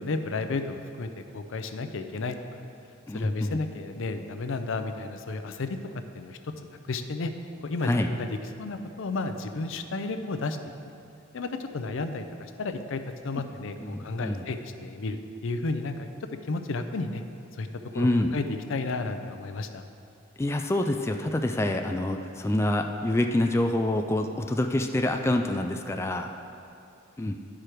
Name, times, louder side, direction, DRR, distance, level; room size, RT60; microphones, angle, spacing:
voice 1, 0.0-2.4 3.1-5.8 6.1-6.4 6.9-7.3 7.6-8.3 8.6-10.6 11.3-16.1 16.5-17.2 17.5-17.7 17.9-18.1 18.3-18.4 18.7-19.8, left 3 dB, 70° left, 8 dB, 0.5 m, -32 dB
voice 2, 3.1-3.6 7.8-8.1 13.8-14.5 17.9-18.4 20.4-26.3 27.2-27.4, left 1 dB, 15° left, 4 dB, 0.3 m, -26 dB
11.5 x 4.9 x 4.5 m, 2.5 s
head